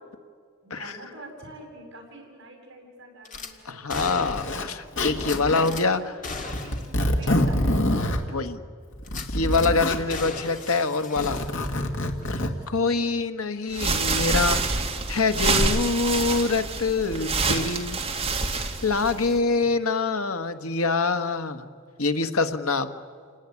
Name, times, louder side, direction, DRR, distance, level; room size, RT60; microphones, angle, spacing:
voice 1, 0.6-3.8 5.8-7.8 8.3-8.5 19.3-19.7, right 2 dB, 55° right, 2 dB, 7.8 m, -46 dB
Zipper (clothing), 3.3-3.4 4.3-4.7 5.0-5.8 6.5-8.2 8.9-10.0 11.0-12.5, left 1 dB, 65° left, 2.2 m, -26 dB
Gunshot gunfire / Glass, 3.3-3.5 3.9-4.7 5.2-5.8 6.2-6.9 7.2-7.3 7.8-7.9 9.0-9.7 10.1-11.9 12.2-12.4, left 4 dB, 40° left, 2.0 m, -37 dB
voice 2, 3.6-6.0 8.3-8.6 9.1-11.4 12.3-14.6 15.1-18.0 18.6-21.7 22.0-22.9, left 4 dB, 85° left, 8 dB, 1.4 m, -25 dB
sound 1, 13.7-19.4, right 3 dB, 25° right, 2.0 m, -26 dB
28.5 x 18.5 x 9.7 m, 2.1 s
head